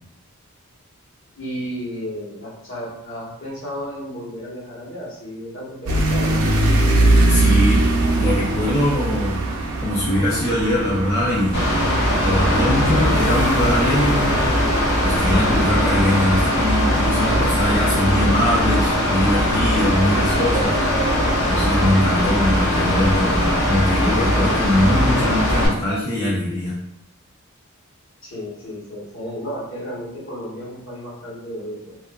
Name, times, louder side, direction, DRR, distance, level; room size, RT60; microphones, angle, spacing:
voice 1, 1.3-6.4 28.2-32.1, equal, 60° left, -6 dB, 1.0 m, -33 dB
sound 1, 5.9-16.5, right 2 dB, 85° right, 0.5 m, -22 dB
voice 2, 7.3-7.8 8.2-9.4 9.8-11.7 12.2-14.5 15.0-20.8 21.4-26.8, left 1 dB, 15° left, -8 dB, 0.5 m, -22 dB
Mechanical fan, 11.5-25.7, equal, 90° left, 1.2 m, -20 dB
2.6 x 2.4 x 2.3 m, 0.79 s
head